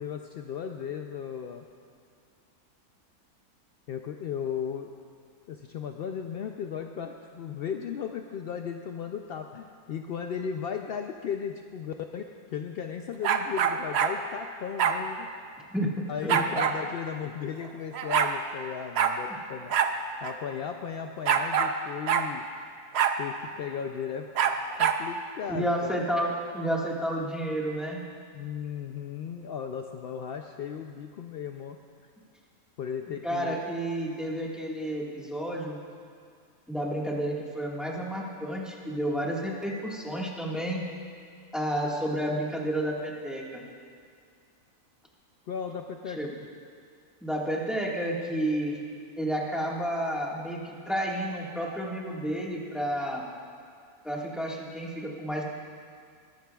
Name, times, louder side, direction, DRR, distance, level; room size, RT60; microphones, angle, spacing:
voice 1, 0.0-1.7 3.9-4.9 5.5-12.2 12.5-15.3 16.1-22.4 23.2-24.3 24.8-26.0 28.3-31.8 32.8-33.6 45.5-46.2, left 7 dB, 75° left, 4 dB, 0.5 m, -36 dB
sound 1, 13.2-14.1 14.8-15.0 16.3-16.8 17.6-17.7 17.9-18.3 19.0-19.2 19.7-19.9 20.2-20.3 21.3-21.7 22.1-22.3 22.9-23.2 24.4-25.0, right 8 dB, 60° right, 0.7 m, -24 dB
voice 2, 15.7-16.6 25.5-28.0 33.2-35.8 36.7-40.8 41.5-43.6 46.2-46.3 47.2-48.8 49.2-53.3 54.0-55.4, right 1 dB, ahead, -3 dB, 1.5 m, -31 dB
22.0 x 11.5 x 2.3 m, 2.2 s
omnidirectional pair, 1.5 m